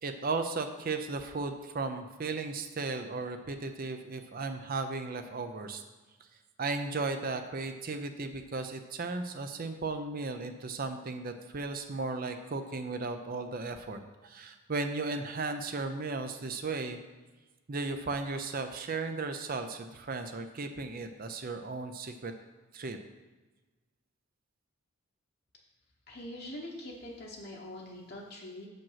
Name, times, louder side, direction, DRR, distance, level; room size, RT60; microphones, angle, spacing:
voice 1, 0.0-5.8 6.6-17.0 17.7-22.3 22.7-23.0, right 3 dB, 40° right, 7 dB, 0.5 m, -35 dB
voice 2, 26.1-28.7, left 1 dB, 45° left, -2 dB, 1.0 m, -43 dB
7.4 x 5.2 x 5.7 m, 1.2 s
head